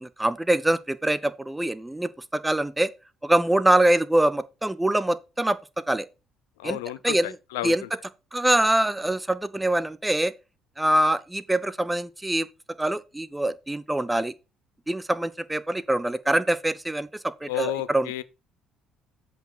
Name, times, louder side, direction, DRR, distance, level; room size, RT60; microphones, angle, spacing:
voice 1, 0.0-2.9 3.2-5.6 5.9-6.1 6.6-6.8 7.0-7.3 7.6-7.8 8.3-10.3 10.8-12.5 12.8-14.3 14.9-18.1, right 1 dB, 10° right, 0.7 m, -24 dB
voice 2, 6.6-7.7 17.5-18.2, left 14 dB, 75° left, 0.6 m, -31 dB
7.9 x 4.8 x 4.3 m
hypercardioid pair, 55°, 0 cm